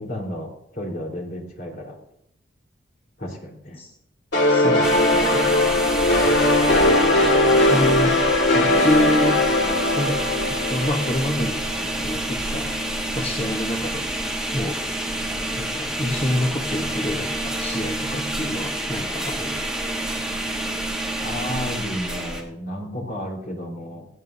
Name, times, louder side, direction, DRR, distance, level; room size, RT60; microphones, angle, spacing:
voice 1, 0.0-2.0 3.2-3.8 21.2-24.1, left 1 dB, 45° left, 0 dB, 4.1 m, -32 dB
sound 1, 4.3-11.8, left 1 dB, 70° left, 2.4 m, -19 dB
voice 2, 4.5-5.4 7.7-8.2 8.5-9.4 9.9-14.1 14.5-14.8 15.5-19.6, left 1 dB, 30° left, 1 dB, 1.2 m, -27 dB
sound 2, 4.8-22.4, right 1 dB, 5° right, 1.8 m, -28 dB
17.0 x 17.0 x 2.7 m, 0.75 s
head